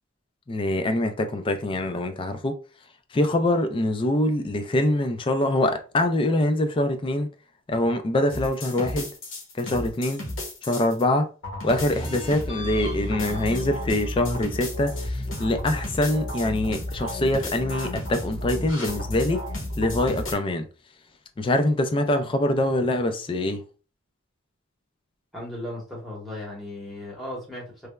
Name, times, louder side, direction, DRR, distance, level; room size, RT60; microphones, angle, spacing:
voice 1, 0.5-2.6 3.1-7.3 7.7-9.1 9.5-10.2 10.6-11.3 11.6-19.4 19.8-20.7 21.4-23.6, left 1 dB, 25° left, 0.3 m, -24 dB
sound 1, 8.3-11.0 11.4-20.3, left 1 dB, 65° left, 0.9 m, -32 dB
voice 2, 25.3-27.9, left 1 dB, ahead, 1.0 m, -36 dB
3.3 x 2.0 x 2.2 m
head